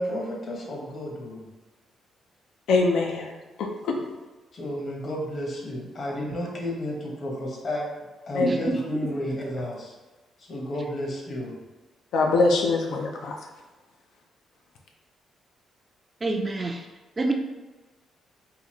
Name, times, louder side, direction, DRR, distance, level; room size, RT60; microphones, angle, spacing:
voice 1, 0.0-1.5 4.5-7.9 8.3-9.9 10.4-11.6, left 1 dB, 50° left, -1 dB, 1.0 m, -32 dB
voice 2, 2.7-3.3 3.6-4.0 8.3-8.5 12.1-13.3, left 3 dB, 80° left, 1 dB, 0.4 m, -23 dB
voice 3, 8.4-8.8 16.2-16.9 17.2-17.3, right 2 dB, 25° right, 3 dB, 0.4 m, -26 dB
3.8 x 2.4 x 2.9 m, 1.2 s
cardioid pair, 90°, 0 cm